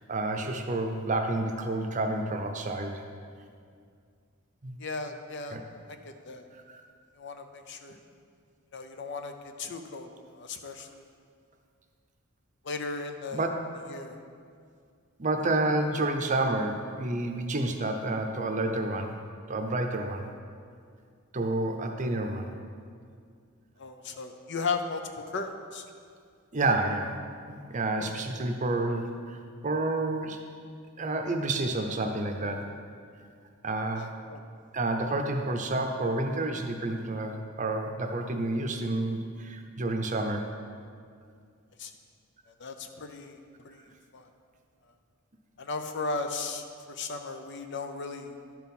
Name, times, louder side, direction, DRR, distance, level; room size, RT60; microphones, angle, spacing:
voice 1, 0.0-3.0 4.6-4.8 5.5-5.6 6.7-6.8 13.3-13.5 15.2-19.1 19.5-20.3 21.3-22.5 26.5-27.1 27.5-29.4 29.6-30.4 31.0-32.7 33.6-34.1 34.7-40.5, right 2 dB, 35° right, 4 dB, 0.7 m, -29 dB
voice 2, 4.8-5.6 5.9-6.5 7.2-8.0 8.7-10.1 10.3-11.0 12.6-13.5 13.9-14.2 23.8-25.8 28.1-28.2 34.0-34.4 41.8-41.9 42.6-44.3 45.6-48.4, left 4 dB, 55° left, 6 dB, 0.6 m, -36 dB
11.5 x 4.7 x 5.4 m, 2.2 s
head